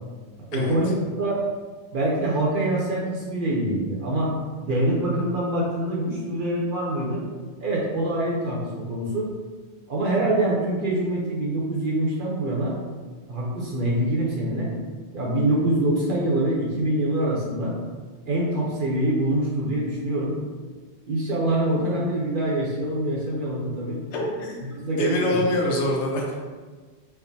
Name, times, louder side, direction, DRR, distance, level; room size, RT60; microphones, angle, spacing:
voice 1, 0.5-1.4 1.9-4.3 4.6-7.2 7.6-9.3 9.9-12.8 13.3-14.7 15.1-17.7 18.3-20.3 21.1-24.0 24.7-25.4, right 1 dB, 50° right, -4 dB, 0.8 m, -25 dB
voice 2, 24.1-24.7 25.0-26.4, left 1 dB, 75° left, -1 dB, 0.9 m, -25 dB
4.6 x 2.1 x 2.7 m, 1.4 s
omnidirectional pair, 1.2 m